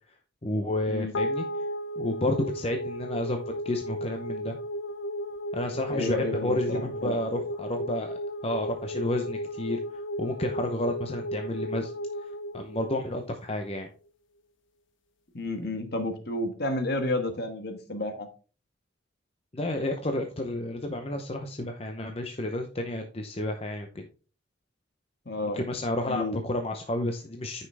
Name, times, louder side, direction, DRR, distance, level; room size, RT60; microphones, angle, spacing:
voice 1, 0.4-1.4 2.0-4.6 5.5-11.9 12.2-12.3 12.5-13.9 19.5-24.1 25.5-27.7, left 1 dB, 30° left, 4 dB, 0.7 m, -31 dB
sound 1, 1.1-13.7, equal, 75° left, 0.9 m, -35 dB
voice 2, 5.9-7.2 15.3-18.3 25.2-25.6 26.0-26.4, left 2 dB, 55° left, 6 dB, 1.5 m, -31 dB
9.6 x 5.6 x 3.4 m, 0.36 s
head